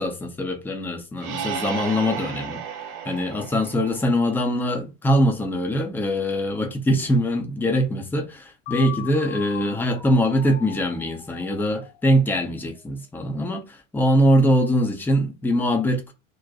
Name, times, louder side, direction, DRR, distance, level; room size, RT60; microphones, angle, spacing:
voice 1, 0.0-2.6 3.0-16.1, equal, 5° left, 0.5 m, -22 dB
sound 1, 1.2-4.8, right 7 dB, 40° right, 0.6 m, -34 dB
sound 2, 8.7-12.5, left 9 dB, 55° left, 0.7 m, -39 dB
2.5 x 2.2 x 3.8 m
figure-of-eight pair, 80°, 41 cm